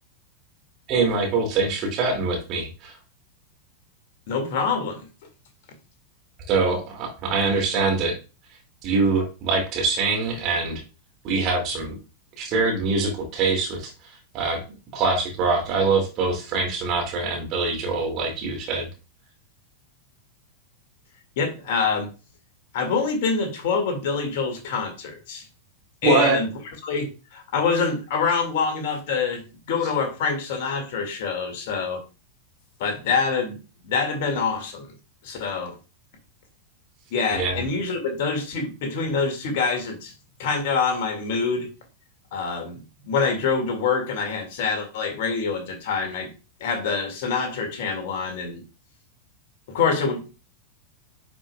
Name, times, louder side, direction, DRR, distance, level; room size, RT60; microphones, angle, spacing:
voice 1, 0.9-2.9 6.5-8.2 8.8-10.8 11.2-12.0 12.4-13.9 14.3-14.6 14.9-18.9 26.0-26.4 37.3-37.6, right 3 dB, 35° right, 1 dB, 2.5 m, -23 dB
voice 2, 4.3-5.1 21.4-22.1 22.7-25.5 26.0-26.5 26.8-32.0 32.8-34.9 35.2-35.8 37.1-40.1 40.4-41.7 42.3-46.3 46.6-48.6 49.7-50.3, left 5 dB, 50° left, 4 dB, 2.2 m, -26 dB
10.0 x 5.0 x 2.4 m, 0.31 s
figure-of-eight pair, 90°, 0 cm